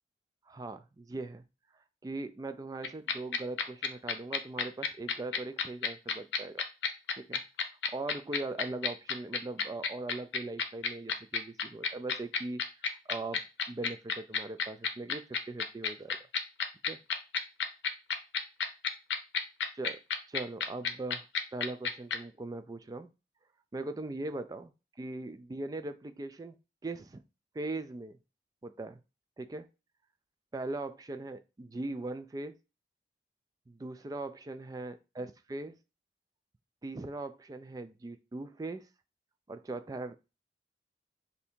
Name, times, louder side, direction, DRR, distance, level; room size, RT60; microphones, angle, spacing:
voice 1, 0.5-1.4 2.0-6.7 7.2-7.4 7.9-12.6 12.9-13.4 13.7-16.2 16.9-17.0 19.7-20.0 20.3-21.3 21.5-23.1 23.7-24.7 25.0-26.6 26.8-27.2 27.5-28.2 28.6-29.0 29.4-29.7 30.5-32.5 33.7-35.8 36.8-38.9 39.5-40.2, right 2 dB, 20° right, 10 dB, 0.3 m, -40 dB
sound 1, 2.8-22.2, left 6 dB, 90° left, 0.6 m, -30 dB
3.3 x 2.7 x 4.2 m, 0.29 s
head